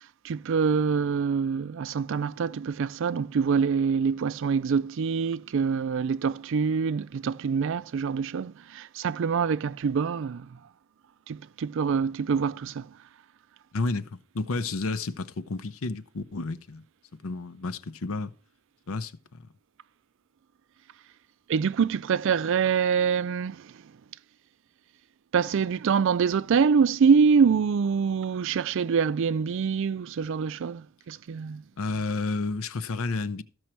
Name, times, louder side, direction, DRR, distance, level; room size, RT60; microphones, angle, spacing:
voice 1, 0.2-10.6 11.3-12.9 21.5-23.9 25.3-31.6, right 6 dB, 60° right, 0.4 m, -25 dB
voice 2, 13.7-16.8 17.2-18.3 18.9-19.4 31.8-33.4, left 3 dB, 75° left, 0.7 m, -31 dB
13.5 x 6.2 x 4.4 m
head